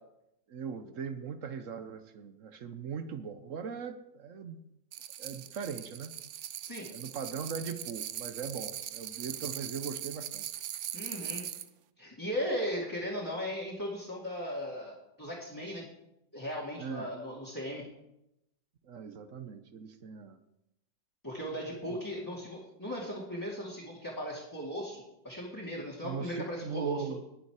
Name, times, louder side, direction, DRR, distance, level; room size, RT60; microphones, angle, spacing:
voice 1, 0.5-4.6 5.2-6.1 6.9-10.5 16.8-17.1 18.8-20.4 21.9-22.0 26.0-27.2, right 6 dB, 55° right, 10 dB, 1.1 m, -40 dB
sound 1, 4.9-11.7, right 11 dB, 75° right, 0.6 m, -40 dB
voice 2, 10.9-11.4 12.0-15.8 16.3-17.8 21.2-27.0, equal, 10° left, -5 dB, 2.2 m, -37 dB
19.0 x 7.0 x 4.8 m, 0.85 s
omnidirectional pair, 1.9 m